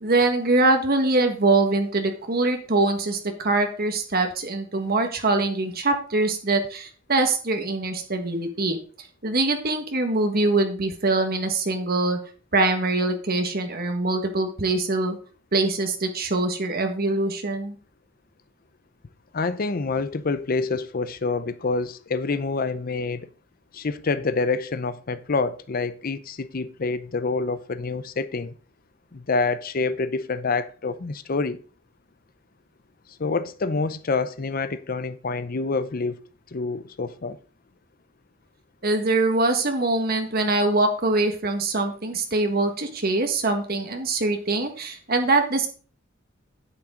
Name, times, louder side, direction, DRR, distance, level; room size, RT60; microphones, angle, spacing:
voice 1, 0.0-12.2 12.5-15.2 15.5-17.8 38.8-45.7, right 2 dB, 50° right, 1.6 m, -23 dB
voice 2, 19.3-23.3 23.7-28.5 29.1-31.6 33.2-36.2 36.5-37.4, left 3 dB, 50° left, 0.6 m, -27 dB
9.6 x 8.9 x 3.8 m
head